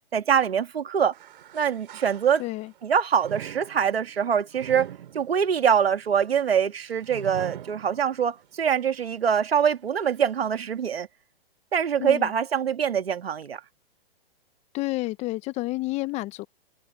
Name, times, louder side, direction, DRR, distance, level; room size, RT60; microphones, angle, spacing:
voice 1, 0.1-1.1 1.5-2.4 2.8-4.9 5.1-11.1 11.7-13.6, right 8 dB, 75° right, 2.0 m, -24 dB
sound 1, 1.1-2.7 3.2-8.5 8.9-9.0 9.9-10.0, right 11 dB, 60° right, 5.0 m, -42 dB
voice 2, 2.4-2.7 12.0-12.3 14.7-16.5, left 20 dB, 20° left, 0.7 m, -30 dB
hypercardioid pair, 130°, 30 cm